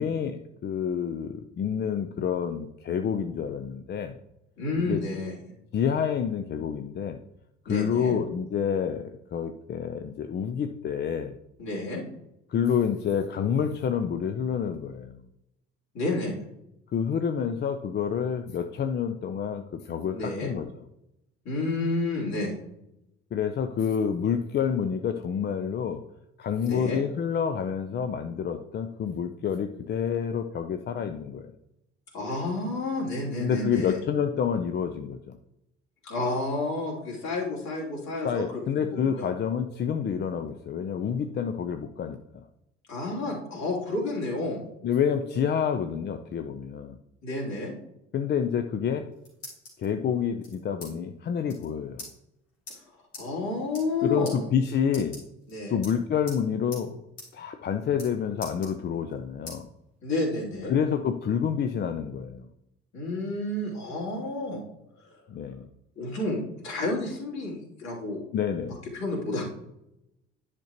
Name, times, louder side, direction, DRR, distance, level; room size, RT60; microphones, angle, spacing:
voice 1, 0.0-4.2 4.9-5.0 5.7-7.2 7.7-11.4 12.5-15.2 16.9-20.7 23.3-26.0 26.4-31.5 33.4-35.3 38.2-42.4 44.8-47.0 48.1-49.1 49.8-52.1 54.0-55.2 55.7-57.0 57.3-59.7 60.7-62.5 65.3-65.7 68.3-68.8, left 7 dB, 30° left, 8 dB, 0.5 m, -28 dB
voice 2, 4.6-5.4 7.7-8.2 11.6-12.0 15.9-16.4 20.1-20.5 21.4-22.6 26.6-27.0 32.1-34.0 36.0-39.3 42.9-44.6 47.2-47.7 53.2-54.5 55.5-55.8 60.0-60.8 62.9-64.6 65.9-68.2 68.7-69.4, left 2 dB, 50° left, -3 dB, 3.1 m, -30 dB
sound 1, 49.0-49.9 50.4-50.9 51.2-51.3 51.5-51.7 52.0-52.1 52.7-52.8 53.1-53.3 53.6-54.0 54.2-54.4 54.9-55.5 55.8-56.4 56.7-56.8 57.2-57.3 57.6-58.1 58.4-59.1 59.5-59.6 60.1-61.0, left 2 dB, 80° left, 3.3 m, -43 dB
10.5 x 5.9 x 3.0 m, 0.84 s
figure-of-eight pair, 60°, 35 cm